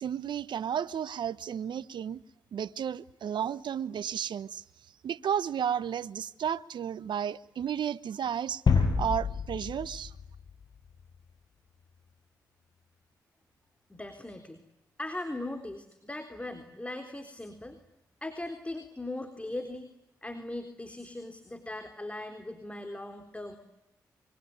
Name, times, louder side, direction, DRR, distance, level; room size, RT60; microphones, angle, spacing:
voice 1, 0.0-2.2 2.5-4.6 5.0-8.6 9.0-10.1, right 8 dB, 65° right, 0.9 m, -33 dB
sound 1, 8.7-11.1, left 5 dB, 60° left, 6.7 m, -28 dB
voice 2, 13.9-14.6 15.0-17.8 18.2-19.9 20.2-23.6, left 1 dB, 15° left, 3.8 m, -39 dB
25.5 x 24.0 x 9.6 m
hypercardioid pair, 40°, 8 cm